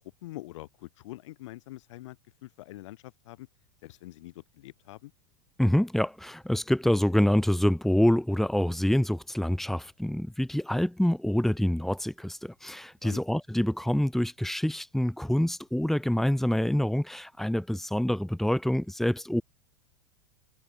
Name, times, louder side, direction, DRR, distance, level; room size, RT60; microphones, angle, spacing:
voice 1, 0.2-2.2 2.4-3.5 3.8-5.1 13.0-13.2, left 17 dB, 70° left, 7.9 m, -44 dB
voice 2, 5.6-19.4, left 1 dB, ahead, 2.5 m, -26 dB
hypercardioid pair, 110°, 17 cm